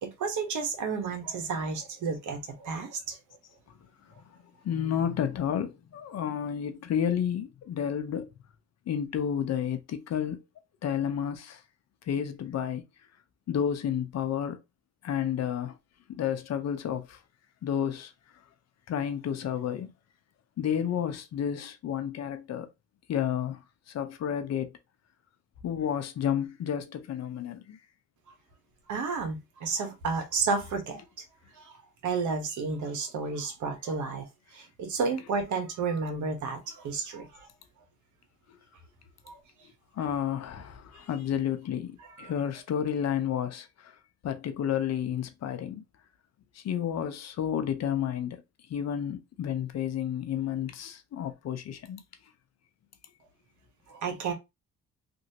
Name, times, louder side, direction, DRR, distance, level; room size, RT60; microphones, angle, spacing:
voice 1, 0.0-3.2 28.9-31.0 31.6-31.8 32.0-34.3 34.5-37.5 39.3-39.4 42.0-42.3 53.9-54.3, right 4 dB, 75° right, 1.2 m, -32 dB
voice 2, 4.6-8.3 8.9-10.4 10.8-11.6 12.1-12.8 13.5-14.6 15.0-15.8 16.2-17.2 17.6-18.1 18.9-19.9 20.6-22.7 23.1-23.6 23.9-24.7 25.6-27.8 40.0-43.9 44.2-45.8 46.5-48.4 48.7-52.0, left 9 dB, 60° left, 0.7 m, -31 dB
3.0 x 2.7 x 2.8 m
cardioid pair, 90°, 30 cm